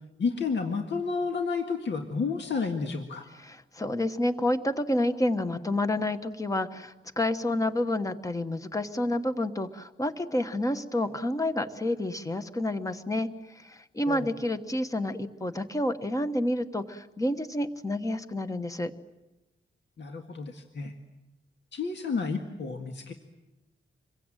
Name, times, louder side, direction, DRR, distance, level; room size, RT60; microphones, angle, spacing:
voice 1, 0.2-3.3 14.1-14.3 20.0-20.9 21.7-23.1, left 4 dB, 60° left, 3 dB, 1.9 m, -31 dB
voice 2, 3.4-18.9, left 1 dB, 15° left, 9 dB, 1.2 m, -29 dB
27.0 x 23.0 x 9.0 m, 1.0 s
wide cardioid pair, 165°, 21 cm